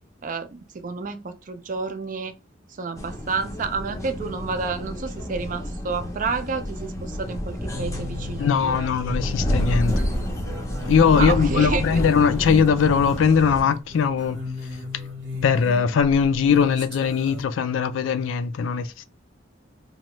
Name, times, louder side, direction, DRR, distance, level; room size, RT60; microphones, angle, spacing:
voice 1, 0.2-2.3 2.8-8.9 11.1-12.0, right 4 dB, 45° right, 0.4 m, -30 dB
sound 1, 3.0-13.6, equal, 15° left, 0.5 m, -29 dB
sound 2, 7.7-17.4, left 1 dB, 80° right, 1.1 m, -36 dB
voice 2, 8.4-10.0 10.8-14.4 15.4-19.0, left 6 dB, 85° left, 0.3 m, -20 dB
2.7 x 2.2 x 3.0 m
head